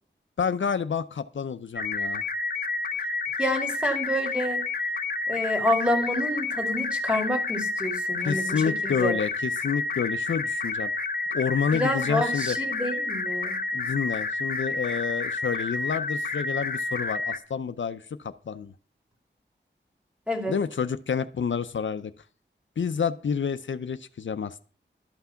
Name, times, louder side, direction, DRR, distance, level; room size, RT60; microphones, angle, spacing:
voice 1, 0.4-2.2 8.2-10.9 11.3-12.6 13.7-18.7 20.5-22.1 22.8-24.6, left 6 dB, 75° left, 11 dB, 0.6 m, -29 dB
sound 1, 1.8-17.4, left 3 dB, 50° left, 0.9 m, -30 dB
voice 2, 3.4-4.6 5.3-9.2 11.7-13.6 20.3-20.6, left 1 dB, 5° right, 3 dB, 2.5 m, -28 dB
12.5 x 6.0 x 5.7 m, 0.41 s
wide cardioid pair, 85°, 20 cm